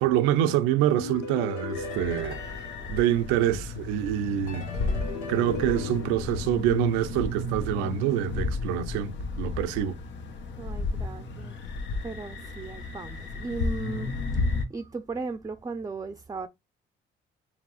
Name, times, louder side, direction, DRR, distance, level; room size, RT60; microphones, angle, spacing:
voice 1, 0.0-4.7 5.3-10.0, right 11 dB, 90° right, 0.5 m, -26 dB
sound 1, 1.0-3.8 4.5-7.3, left 3 dB, 90° left, 1.0 m, -38 dB
sound 2, 1.7-14.7, left 3 dB, 60° left, 1.0 m, -33 dB
voice 2, 10.6-11.6 12.0-14.4 14.7-16.5, right 4 dB, 15° right, 0.5 m, -36 dB
4.8 x 3.4 x 2.4 m
supercardioid pair, 60°, 21 cm